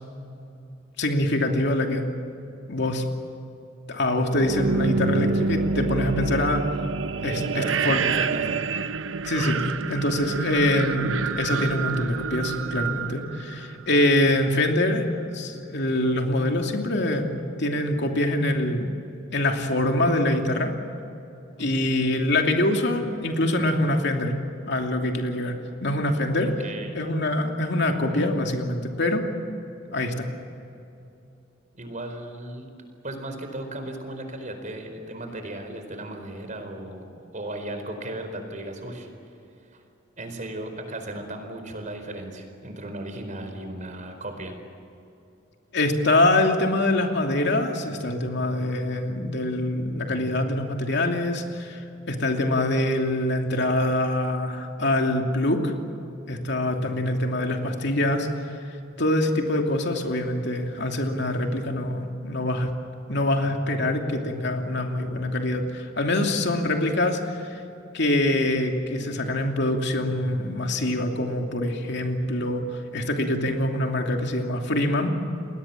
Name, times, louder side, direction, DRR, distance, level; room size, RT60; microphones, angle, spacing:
voice 1, 1.0-2.1 2.7-3.0 3.9-6.6 7.2-8.0 9.2-15.1 15.3-17.3 17.6-18.9 19.3-20.7 21.6-24.4 24.7-26.5 26.9-29.2 29.9-30.3 45.7-55.7 56.3-58.6 59.0-62.7 63.1-67.6 67.9-75.1, left 1 dB, 65° left, 3 dB, 2.8 m, -24 dB
sound 1, 4.3-14.2, right 4 dB, 90° right, 0.8 m, -28 dB
voice 2, 7.3-8.6 21.6-22.0 26.6-26.9 31.7-32.7 33.0-39.1 39.7-39.8 40.2-44.5, right 1 dB, 40° right, 6 dB, 4.5 m, -36 dB
30.0 x 21.0 x 7.4 m, 2.8 s
head